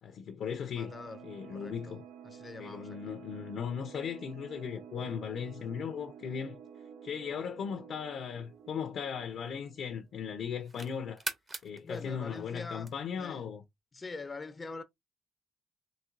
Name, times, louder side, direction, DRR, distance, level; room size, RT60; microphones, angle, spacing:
voice 1, 0.0-0.9 1.2-2.0 2.6-6.6 7.0-11.2 11.6-13.6, left 7 dB, 70° left, 0.6 m, -37 dB
voice 2, 0.7-2.0 2.2-3.1 11.8-12.9 13.2-13.4 13.9-14.8, left 3 dB, 30° left, 0.5 m, -44 dB
sound 1, 0.8-10.1, right 7 dB, 90° right, 0.5 m, -51 dB
sound 2, 8.4-9.9 10.4-13.3, right 2 dB, 30° right, 0.8 m, -44 dB
4.2 x 2.7 x 2.5 m
cardioid pair, 90°, 0 cm